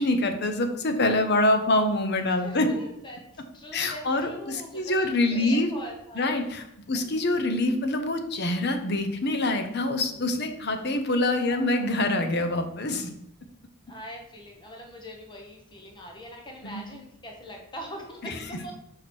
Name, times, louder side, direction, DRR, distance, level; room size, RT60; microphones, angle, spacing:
voice 1, 0.0-2.7 3.7-5.7 6.2-13.1 16.6-16.8 18.2-18.3, left 2 dB, 50° left, 7 dB, 0.8 m, -25 dB
voice 2, 1.3-2.0 2.3-6.5 6.9-7.0 11.4-11.9 13.9-18.7, equal, 20° left, 1 dB, 1.1 m, -42 dB
6.1 x 4.8 x 4.4 m, 0.77 s
head